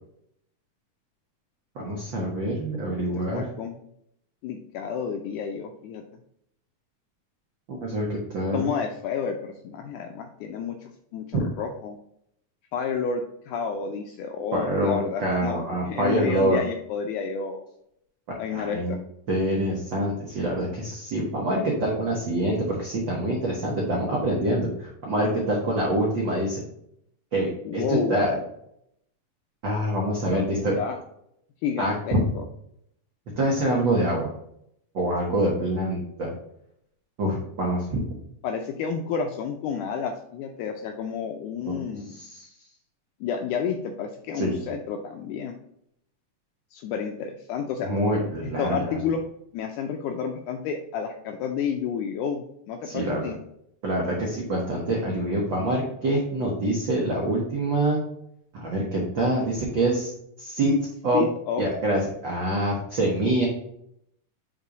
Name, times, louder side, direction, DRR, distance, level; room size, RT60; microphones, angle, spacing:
voice 1, 1.7-3.4 7.7-8.7 14.5-16.6 18.3-19.0 19.3-26.7 27.3-28.3 29.6-30.8 31.8-32.2 33.4-34.3 34.9-36.3 37.2-38.0 42.1-42.5 44.3-44.6 47.8-49.0 52.8-53.3 53.8-58.0 58.5-60.1 60.4-60.7 61.0-61.2 61.6-63.5, right 1 dB, 90° right, -2 dB, 1.0 m, -25 dB
voice 2, 3.0-3.7 4.4-6.0 8.5-12.0 12.7-17.6 18.4-19.0 27.7-28.3 30.3-30.4 30.8-31.0 31.6-32.4 37.3-37.4 38.4-42.2 43.2-45.6 46.7-47.9 48.4-49.2 49.5-53.4 61.1-61.6, left 6 dB, 80° left, 4 dB, 2.0 m, -30 dB
5.5 x 3.7 x 4.8 m, 0.74 s
omnidirectional pair, 3.7 m